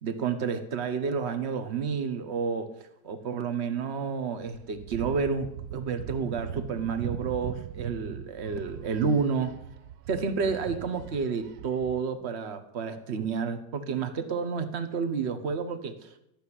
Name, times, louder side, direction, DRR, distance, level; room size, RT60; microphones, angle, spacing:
voice 1, 0.0-2.7 3.0-9.5 10.1-16.1, right 5 dB, 40° right, 9 dB, 1.2 m, -30 dB
sound 1, 4.4-12.0, right 11 dB, 75° right, 0.8 m, -40 dB
13.5 x 6.5 x 9.9 m, 0.81 s
omnidirectional pair, 2.3 m